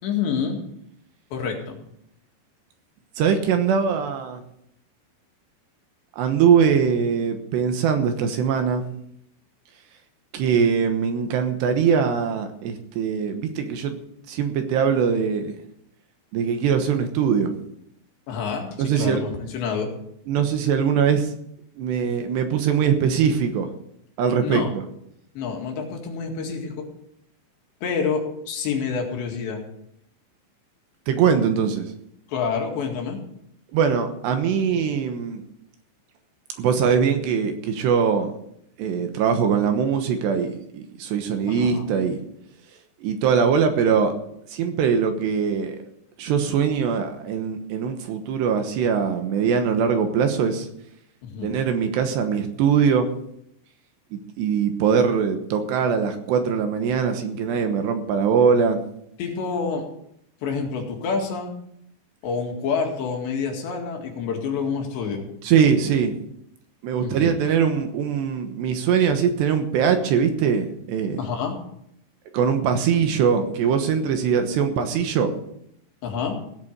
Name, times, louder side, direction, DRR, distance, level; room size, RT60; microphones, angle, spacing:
voice 1, 0.0-0.6 1.3-1.8 18.3-19.9 24.4-24.7 25.4-26.9 27.8-29.6 32.3-33.2 41.5-41.9 51.2-51.6 59.2-59.9 60.4-61.5 62.2-65.3 67.0-67.4 71.2-71.6 76.0-76.4, left 5 dB, 70° left, 2 dB, 4.1 m, -28 dB
voice 2, 3.2-4.4 6.1-8.8 10.3-14.0 14.3-15.5 16.3-17.5 18.8-19.2 20.3-21.3 21.8-23.7 24.2-24.9 31.1-31.9 33.7-35.4 36.6-38.3 38.8-42.2 43.0-44.1 44.5-45.8 46.2-50.7 51.4-53.1 54.1-58.8 65.4-66.1 66.8-71.2 72.3-75.3, right 7 dB, 75° right, 6 dB, 3.1 m, -22 dB
17.0 x 8.2 x 6.3 m, 0.73 s
omnidirectional pair, 5.5 m